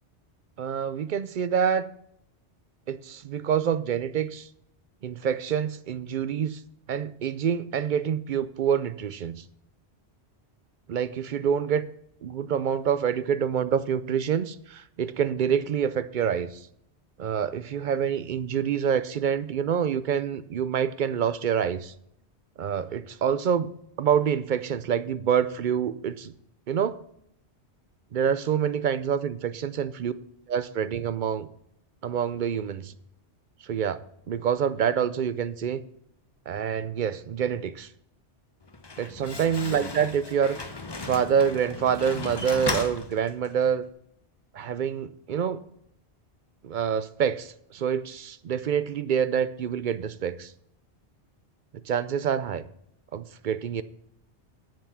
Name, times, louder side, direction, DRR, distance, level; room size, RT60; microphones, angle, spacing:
voice 1, 0.6-1.9 2.9-4.5 5.0-6.6 6.9-9.4 10.9-11.9 12.2-16.6 17.2-21.9 22.6-23.7 24.0-26.3 26.7-27.0 28.1-30.1 30.5-31.5 32.0-32.9 33.6-34.0 34.3-35.8 36.5-37.9 39.0-40.6 41.0-43.8 44.5-45.6 46.6-50.5 51.9-52.6 53.1-53.8, right 8 dB, 55° right, 14 dB, 0.6 m, -26 dB
Slam, 38.6-43.7, left 3 dB, 25° left, 0.7 m, -36 dB
10.5 x 6.8 x 5.8 m, 0.72 s
omnidirectional pair, 1.2 m